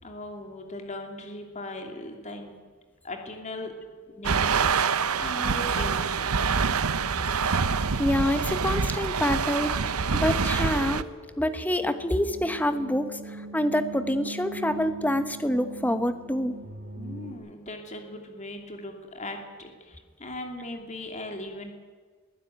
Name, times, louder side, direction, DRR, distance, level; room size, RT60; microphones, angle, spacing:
voice 1, 0.0-2.5 3.0-3.7 4.1-6.4 17.0-21.7, left 1 dB, 35° left, 3 dB, 2.8 m, -39 dB
sound 1, 4.2-11.0, right 5 dB, 85° right, 0.9 m, -26 dB
voice 2, 7.6-9.7 10.1-11.1 11.4-16.6, left 1 dB, 5° left, 10 dB, 1.1 m, -27 dB
sound 2, 10.5-17.3, right 2 dB, 45° right, 5.4 m, -43 dB
22.5 x 15.0 x 9.3 m, 1.5 s
head